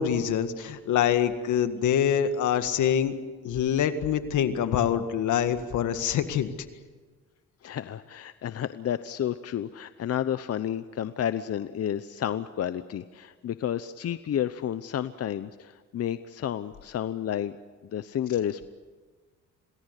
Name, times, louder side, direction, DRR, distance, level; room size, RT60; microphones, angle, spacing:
voice 1, 0.0-3.1 3.4-6.5, left 9 dB, 75° left, 9 dB, 1.9 m, -25 dB
voice 2, 7.6-17.6 17.9-18.7, left 10 dB, 55° left, 12 dB, 0.8 m, -31 dB
27.5 x 19.0 x 8.3 m, 1.4 s
cardioid pair, 90°, 30 cm